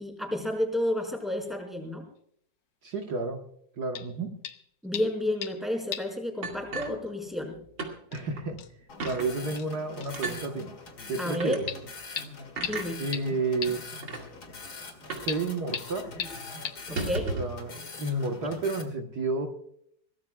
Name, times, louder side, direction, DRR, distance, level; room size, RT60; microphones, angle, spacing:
voice 1, 0.0-2.0 4.8-7.6 11.2-11.6 12.6-13.0 16.9-17.4, left 1 dB, ahead, 1 dB, 4.5 m, -31 dB
voice 2, 2.8-3.4 3.8-4.3 8.1-8.6 9.0-10.7 11.1-11.7 13.0-13.8 15.1-16.1 17.4-19.5, right 3 dB, 60° right, 2 dB, 1.9 m, -31 dB
sound 1, 3.9-4.1 4.4-4.6 4.9-5.6 5.9-6.2 6.4-6.5 7.6-7.7 8.1-8.2 8.6-8.7 9.1-9.2 9.6-9.7 10.0-10.1 11.7-11.8 12.2-12.3 12.6-12.7 13.1-13.2 13.6-13.7 15.3-15.4 15.7-15.8 16.2-16.3 16.6-16.7, left 8 dB, 75° left, 1.6 m, -35 dB
sound 2, 6.4-7.5 7.8-8.0 8.4-8.5 9.0-9.3 10.1-10.4 11.3-11.6 12.6-12.9 13.7-13.8 14.0-14.2 15.1-15.4 15.6-15.7 16.1-16.2 16.8-17.6, right 3 dB, 80° right, 3.0 m, -34 dB
sound 3, 8.9-18.8, left 3 dB, 60° left, 2.6 m, -43 dB
23.5 x 18.0 x 2.3 m, 0.67 s
omnidirectional pair, 1.9 m